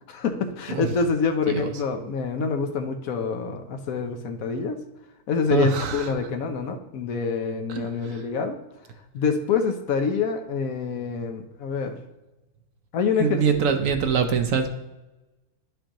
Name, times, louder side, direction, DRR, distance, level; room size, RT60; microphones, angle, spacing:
voice 1, 0.1-4.8 5.3-8.6 9.1-12.0 12.9-13.4, left 5 dB, 70° left, 6 dB, 1.1 m, -26 dB
voice 2, 5.5-6.1 7.7-8.2 13.2-14.7, right 6 dB, 65° right, 7 dB, 1.0 m, -24 dB
11.0 x 5.2 x 2.9 m, 1.0 s
omnidirectional pair, 1.6 m